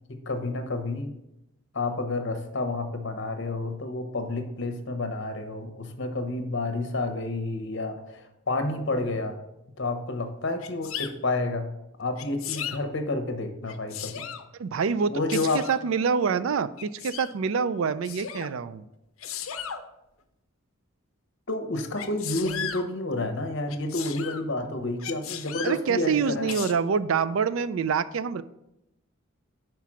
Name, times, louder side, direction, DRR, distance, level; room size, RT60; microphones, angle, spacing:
voice 1, 0.1-1.1 1.7-9.4 9.8-11.7 12.0-14.3 15.1-15.7 21.5-26.6, left 2 dB, 60° left, 7 dB, 0.9 m, -30 dB
Sneeze, 10.6-11.1 12.2-12.8 13.6-14.5 15.3-15.8 16.8-17.3 18.0-18.5 19.2-19.8 22.0-22.8 23.7-24.4 25.0-25.8 26.5-26.7, left 9 dB, 80° left, 0.6 m, -35 dB
voice 2, 14.6-15.1 15.5-18.8 25.6-28.4, right 6 dB, 70° right, 14 dB, 0.4 m, -26 dB
5.8 x 4.6 x 6.1 m, 0.87 s
head